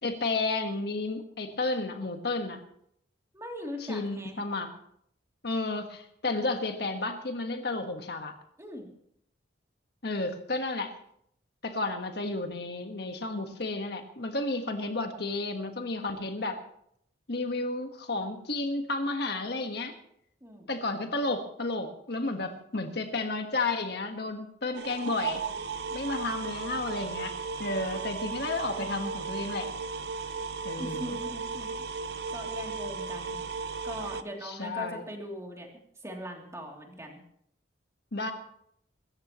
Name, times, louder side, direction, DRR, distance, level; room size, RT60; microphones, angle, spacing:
voice 1, 0.0-2.6 3.9-4.7 5.4-8.3 10.0-10.9 11.6-16.6 17.3-19.9 20.7-25.5 25.9-27.3 27.6-29.7 30.6-31.2 34.4-35.0 38.1-38.3, left 2 dB, 60° left, 5 dB, 1.5 m, -32 dB
voice 2, 3.3-4.4 8.6-8.9 20.4-20.7 27.7-28.2 30.8-31.7 32.3-33.4 33.8-35.7 36.0-37.2, equal, 15° right, 0 dB, 2.9 m, -40 dB
sound 1, 24.7-34.2, right 4 dB, 60° right, 0.7 m, -35 dB
25.0 x 14.0 x 3.1 m, 0.70 s
head